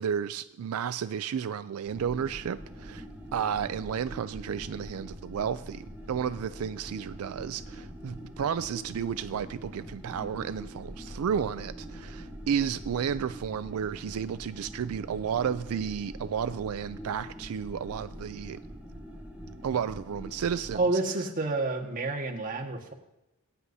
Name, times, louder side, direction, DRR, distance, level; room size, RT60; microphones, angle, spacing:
voice 1, 0.0-3.1 3.3-18.6 19.6-20.8, right 7 dB, 85° right, 0.4 m, -32 dB
sound 1, 1.9-20.8, equal, 10° right, 1.5 m, -43 dB
voice 2, 20.7-22.9, right 3 dB, 40° right, 1.6 m, -29 dB
21.5 x 9.6 x 2.7 m
head